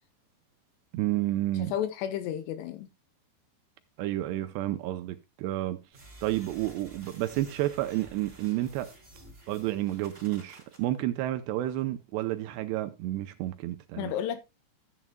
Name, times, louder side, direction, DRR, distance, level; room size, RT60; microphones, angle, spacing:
voice 1, 0.9-1.7 4.0-5.8 6.2-8.9 9.5-14.1, right 15 dB, 80° right, 2.6 m, -30 dB
voice 2, 1.6-2.9 14.0-14.4, left 10 dB, 80° left, 2.6 m, -32 dB
sound 1, 5.9-10.8, right 2 dB, 15° right, 2.6 m, -51 dB
14.0 x 9.2 x 2.2 m
omnidirectional pair, 5.3 m